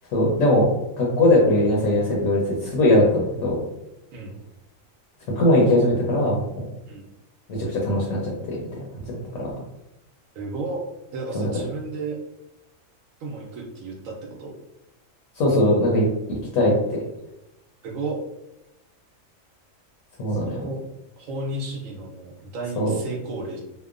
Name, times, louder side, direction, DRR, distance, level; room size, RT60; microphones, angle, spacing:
voice 1, 0.1-0.7 1.0-3.6 5.3-6.6 7.5-8.6 9.0-9.5 11.3-11.5 15.4-16.1 16.5-17.0 20.2-20.6 22.8-23.0, left 1 dB, 80° left, -3 dB, 1.0 m, -20 dB
voice 2, 10.3-10.8 11.1-12.2 13.2-14.6 17.8-18.2 20.3-20.8 21.2-23.6, right 2 dB, 80° right, -2 dB, 1.0 m, -33 dB
2.8 x 2.1 x 2.4 m, 0.92 s
omnidirectional pair, 1.4 m